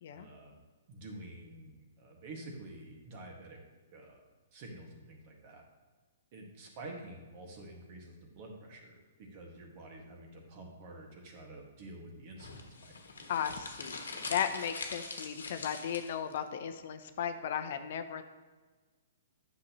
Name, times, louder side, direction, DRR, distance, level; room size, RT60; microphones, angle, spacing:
voice 1, 0.1-0.6 0.9-3.6 3.9-4.2 4.5-5.6 6.3-12.5 12.8-13.0, right 2 dB, 45° right, 0 dB, 1.9 m, -49 dB
sound 1, 12.4-16.4, left 4 dB, 85° left, 1.2 m, -43 dB
voice 2, 13.3-18.2, left 8 dB, 60° left, 9 dB, 0.6 m, -36 dB
9.6 x 6.3 x 3.1 m, 1.3 s
hypercardioid pair, 130°, 0 cm